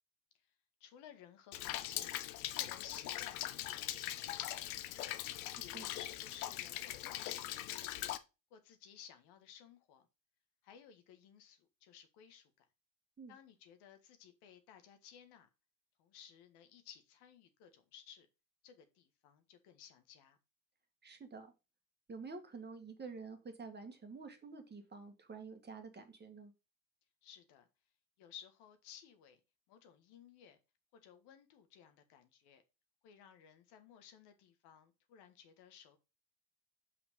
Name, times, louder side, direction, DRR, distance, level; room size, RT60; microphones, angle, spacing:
voice 1, 0.8-2.2 2.5-5.0 5.6-8.1 8.5-10.0 10.6-12.7 13.3-15.5 16.0-18.3 18.6-20.4 27.2-27.7 28.2-29.4 29.7-30.6 30.9-32.6 33.0-36.0, left 9 dB, 65° left, 1.7 m, -57 dB
Rain, 1.5-8.2, left 14 dB, 85° left, 0.8 m, -41 dB
voice 2, 21.0-21.5 22.1-26.5, right 4 dB, 25° right, 1.7 m, -49 dB
5.9 x 5.1 x 5.2 m
supercardioid pair, 85°, 43 cm